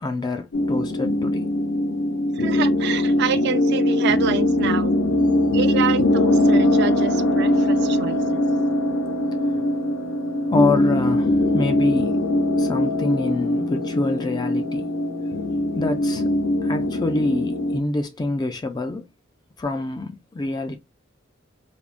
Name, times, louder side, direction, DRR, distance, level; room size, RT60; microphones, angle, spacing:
voice 1, 0.0-1.5 7.6-7.7 9.5-9.6 10.5-12.2 12.6-14.9 15.8-16.2 16.6-19.1 19.6-20.8, left 2 dB, 20° left, 0.3 m, -26 dB
sound 1, 0.5-17.8, left 1 dB, 75° left, 0.7 m, -21 dB
voice 2, 2.3-4.9 5.5-8.4, right 7 dB, 60° right, 0.4 m, -27 dB
3.4 x 2.1 x 2.4 m
head